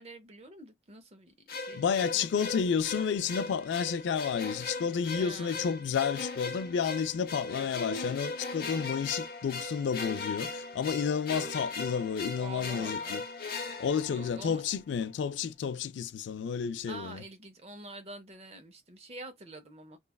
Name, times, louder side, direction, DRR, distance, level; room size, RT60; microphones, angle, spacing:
voice 1, 0.0-1.8 2.1-2.6 5.1-5.9 12.4-13.2 14.1-14.6 16.9-20.0, right 2 dB, 35° right, 0.5 m, -47 dB
sound 1, 1.5-14.7, left 3 dB, 55° left, 0.8 m, -39 dB
voice 2, 1.7-13.2 13.8-17.2, left 7 dB, 85° left, 0.3 m, -31 dB
3.1 x 2.3 x 2.2 m
head